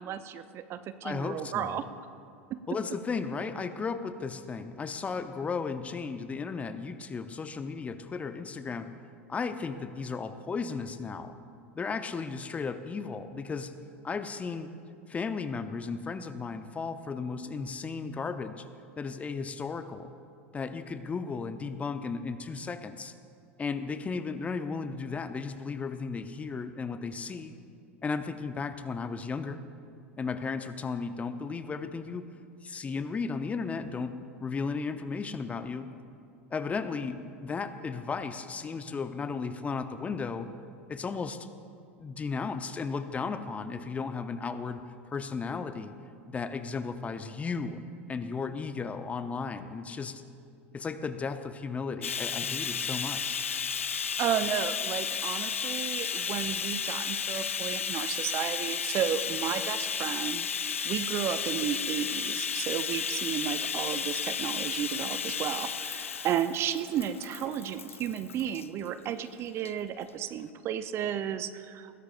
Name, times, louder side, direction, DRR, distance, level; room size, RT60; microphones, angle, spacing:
voice 1, 0.0-1.9 2.5-2.6 52.9-53.0 54.2-60.5 60.8-71.9, right 9 dB, 35° right, 12 dB, 0.6 m, -33 dB
voice 2, 1.0-1.8 2.7-8.9 9.3-11.3 11.7-13.7 14.0-14.7 15.1-18.7 19.0-20.1 20.5-23.1 23.6-27.5 28.0-29.6 30.2-32.2 32.6-34.1 34.4-35.9 36.5-40.5 40.9-41.5 42.0-45.9 46.3-47.8 48.1-50.2 50.7-53.4, left 5 dB, 20° left, 10 dB, 0.7 m, -35 dB
Bathtub (filling or washing), 52.0-68.7 69.6-69.7 70.1-70.2, left 7 dB, 80° left, 0.4 m, -33 dB
20.5 x 16.0 x 2.5 m, 2.4 s
figure-of-eight pair, 85°, 7 cm